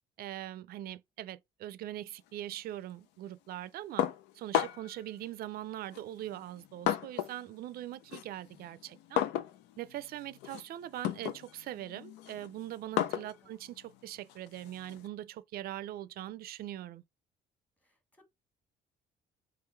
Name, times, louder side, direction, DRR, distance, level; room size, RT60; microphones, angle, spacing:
voice 1, 0.2-4.1 4.3-9.2 9.8-17.0, right 13 dB, 65° right, 0.5 m, -42 dB
sound 1, 4.0-5.0 5.9-7.5 7.8-15.1, left 11 dB, 85° left, 0.5 m, -35 dB
voice 2, 17.8-18.3, left 1 dB, 10° left, 1.3 m, -66 dB
3.8 x 3.0 x 4.4 m
cardioid pair, 110°, 17 cm